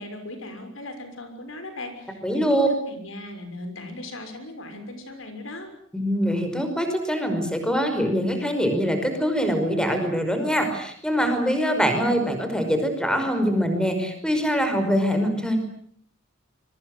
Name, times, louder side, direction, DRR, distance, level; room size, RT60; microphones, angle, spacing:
voice 1, 0.0-5.7, left 1 dB, 75° left, 7 dB, 6.3 m, -38 dB
voice 2, 2.2-2.7 5.9-15.6, equal, 5° left, 7 dB, 5.4 m, -23 dB
26.5 x 23.5 x 8.1 m, 0.63 s
head